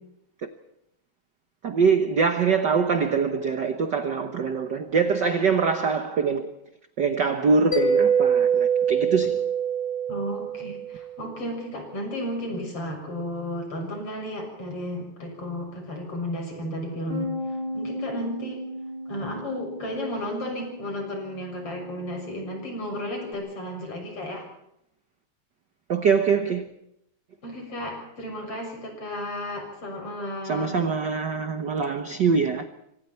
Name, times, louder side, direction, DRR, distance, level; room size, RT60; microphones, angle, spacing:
voice 1, 1.6-6.5 7.0-9.4 25.9-26.7 30.4-32.7, right 5 dB, 60° right, 1.2 m, -23 dB
Mallet percussion, 7.7-11.2, right 6 dB, 15° left, 2.2 m, -23 dB
voice 2, 10.1-17.3 17.7-18.6 19.1-24.5 27.4-30.8, left 1 dB, 50° left, 7.6 m, -33 dB
Bass guitar, 17.1-23.3, left 1 dB, 20° right, 3.1 m, -36 dB
26.0 x 25.0 x 4.5 m
omnidirectional pair, 3.4 m